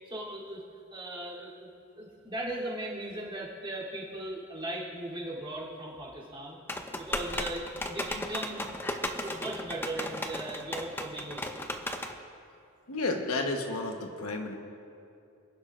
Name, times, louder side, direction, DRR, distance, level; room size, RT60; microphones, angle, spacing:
voice 1, 0.1-0.6 0.9-1.7 2.0-6.6 6.9-8.7 9.2-11.7, right 1 dB, 25° right, -7 dB, 3.2 m, -38 dB
sound 1, 6.7-12.1, left 1 dB, 10° left, 0.6 m, -35 dB
voice 2, 12.9-14.5, left 2 dB, 90° left, 3 dB, 1.2 m, -31 dB
29.0 x 11.0 x 2.5 m, 2.7 s
head